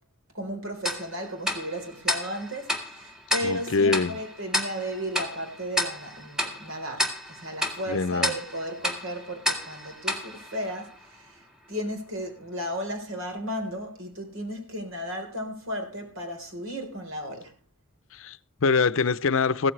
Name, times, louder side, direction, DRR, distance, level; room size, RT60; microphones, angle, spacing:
voice 1, 0.3-17.5, equal, 70° right, 4.0 m, -34 dB
Tick-tock, 0.8-11.3, left 1 dB, 5° right, 2.0 m, -32 dB
voice 2, 3.4-4.2 7.9-8.4 18.1-19.7, left 4 dB, 65° left, 0.6 m, -24 dB
15.5 x 13.5 x 3.3 m
head